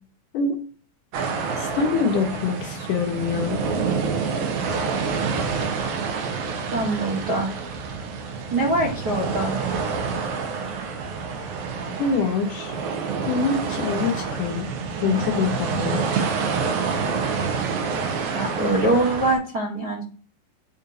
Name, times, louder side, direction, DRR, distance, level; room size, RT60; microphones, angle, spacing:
sound 1, 1.1-19.4, right 5 dB, 85° right, 2.9 m, -27 dB
voice 1, 1.6-3.6 12.0-12.8 13.2-14.7 15.0-16.3, left 5 dB, 70° left, 4 dB, 2.3 m, -25 dB
voice 2, 6.7-7.5 8.5-9.5 18.3-20.0, right 2 dB, 50° right, -6 dB, 1.2 m, -23 dB
9.1 x 4.4 x 2.6 m, 0.41 s
omnidirectional pair, 4.1 m